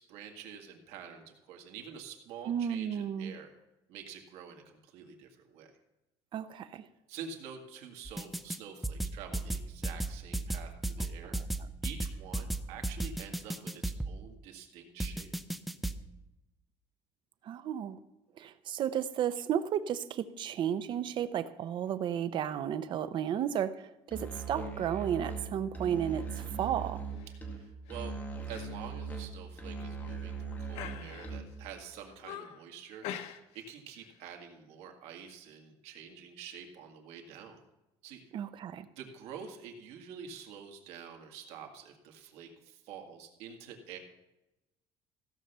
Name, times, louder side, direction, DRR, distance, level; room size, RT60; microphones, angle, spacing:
voice 1, 0.0-3.5 3.9-5.7 7.1-11.4 11.8-15.3 27.3-28.2 28.5-33.2 33.5-37.6 38.0-38.2 39.0-44.0, right 7 dB, 85° right, 3 dB, 2.0 m, -47 dB
voice 2, 2.5-3.3 6.3-6.9 11.2-11.3 17.4-18.0 18.4-27.0 38.3-38.9, right 9 dB, 50° right, 13 dB, 0.7 m, -33 dB
sound 1, 8.1-8.6 8.8-14.1 15.0-16.0, right 2 dB, ahead, 0.5 m, -34 dB
Musical instrument, 24.1-31.7, right 4 dB, 15° left, 1.9 m, -40 dB
sound 2, 26.4-26.7 27.1-27.4 27.9-28.1 28.5-28.7 29.0-29.1 29.8-30.3 30.7-31.5 32.0-32.6 33.0-33.7 34.0-34.2, left 10 dB, 85° left, 1.0 m, -45 dB
15.5 x 5.8 x 6.8 m, 0.97 s
cardioid pair, 145°, 11 cm